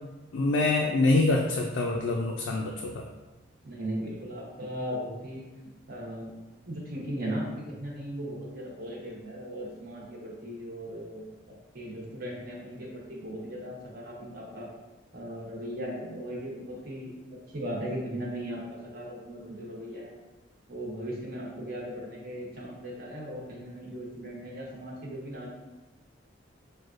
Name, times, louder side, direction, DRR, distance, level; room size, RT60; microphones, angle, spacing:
voice 1, 0.3-3.1, left 2 dB, 85° left, 1 dB, 0.4 m, -25 dB
voice 2, 3.6-5.4 5.9-6.3 6.7-11.3 11.7-14.7 15.1-17.1 17.5-20.1 20.7-25.5, equal, 50° right, -3 dB, 1.0 m, -37 dB
6.3 x 2.2 x 2.5 m, 1.1 s
head